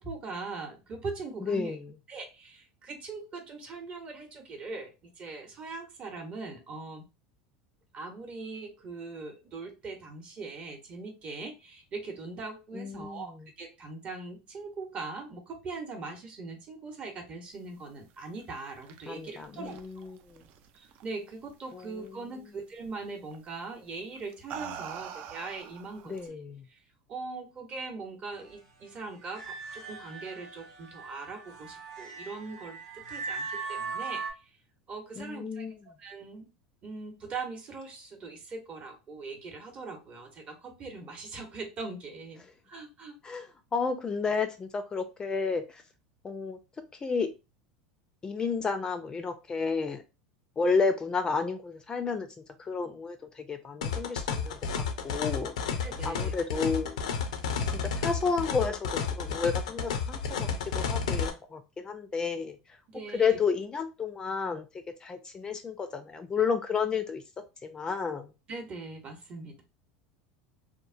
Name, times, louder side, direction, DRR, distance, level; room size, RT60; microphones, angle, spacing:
voice 1, 0.0-1.8 2.1-7.0 7.9-19.8 20.7-26.3 26.7-26.8 27.1-34.2 34.9-36.5 36.8-43.2 55.8-56.3 62.9-63.4 68.5-69.6, right 3 dB, 35° right, 4 dB, 0.8 m, -41 dB
voice 2, 1.5-1.8 12.7-13.2 19.1-20.1 21.7-21.8 26.1-26.6 35.2-35.8 43.2-43.5 43.7-45.8 46.2-46.6 47.0-47.3 48.2-50.0 50.6-52.3 52.7-55.5 56.0-57.0 57.9-60.5 60.7-62.6 63.1-64.6 65.0-67.2 67.6-68.2, left 5 dB, 25° left, 8 dB, 0.4 m, -31 dB
sound 1, 18.4-21.3 21.6-22.1 23.3-23.5 24.2-26.3, right 8 dB, 55° right, 0.3 m, -44 dB
sound 2, 29.3-34.3, right 5 dB, 75° right, 0.9 m, -39 dB
sound 3, 53.8-61.3, left 6 dB, 85° left, 0.5 m, -31 dB
3.0 x 2.0 x 2.5 m, 0.27 s
hypercardioid pair, 100°, 3 cm